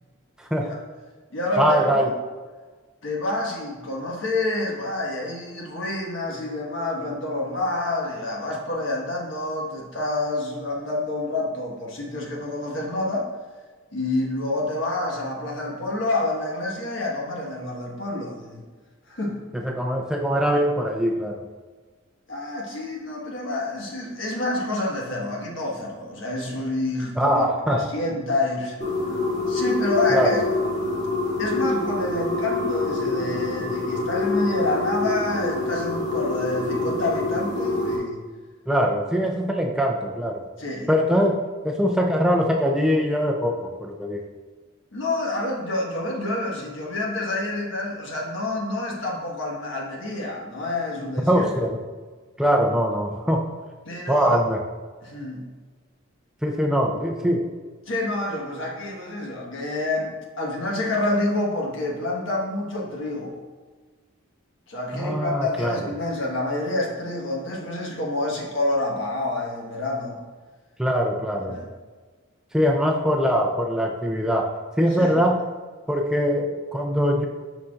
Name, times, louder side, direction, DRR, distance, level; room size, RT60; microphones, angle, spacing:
voice 1, 0.4-0.8 1.6-2.1 19.5-21.4 27.2-27.8 30.1-30.4 38.7-40.4 40.9-44.2 51.3-51.8 52.4-53.5 54.1-54.6 56.4-57.5 64.9-65.8 70.8-71.6 72.5-75.4 75.9-77.3, equal, 5° right, 1 dB, 0.3 m, -22 dB
voice 2, 1.3-2.1 3.0-13.3 13.9-18.6 19.1-19.4 22.3-28.8 29.5-30.4 31.4-38.2 40.6-40.9 44.9-51.5 53.8-54.4 55.0-55.5 57.9-63.4 64.7-70.2 71.5-71.7 74.9-75.2, left 2 dB, 65° left, -2 dB, 1.3 m, -28 dB
sound 1, 28.8-38.0, left 2 dB, 35° left, 1.7 m, -26 dB
7.5 x 5.6 x 2.4 m, 1.4 s
head